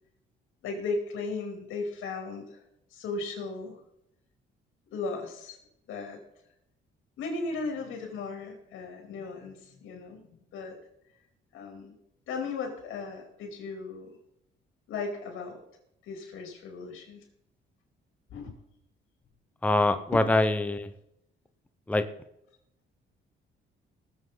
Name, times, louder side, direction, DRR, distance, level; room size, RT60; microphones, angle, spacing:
voice 1, 0.6-2.6 2.9-3.8 4.9-5.6 5.9-6.2 7.2-10.8 11.5-12.0 12.3-14.1 14.9-15.6 16.1-17.2 18.3-18.5 20.2-20.3, left 3 dB, 85° left, 3 dB, 3.5 m, -36 dB
voice 2, 19.6-20.9 21.9-22.0, left 2 dB, 5° left, 9 dB, 0.8 m, -24 dB
19.5 x 7.9 x 4.0 m, 0.80 s
cardioid pair, 90°, 20 cm